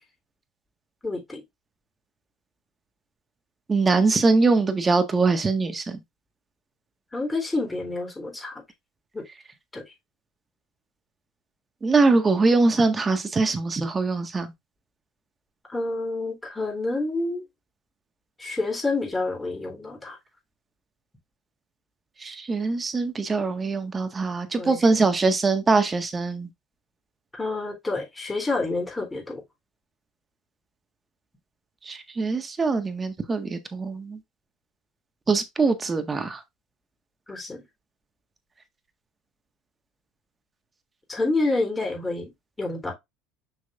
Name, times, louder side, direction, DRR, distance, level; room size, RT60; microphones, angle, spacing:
voice 1, 1.0-1.4 7.1-8.6 9.1-9.2 9.7-9.8 15.7-17.4 18.4-20.2 24.6-25.1 27.3-29.4 37.3-37.6 41.1-42.3 42.6-42.9, left 2 dB, 15° left, 3.6 m, -28 dB
voice 2, 3.7-6.0 11.8-14.5 22.2-26.5 31.8-34.2 35.3-36.4, right 3 dB, 25° right, 1.6 m, -22 dB
6.4 x 6.3 x 2.5 m
hypercardioid pair, 85°, 0 cm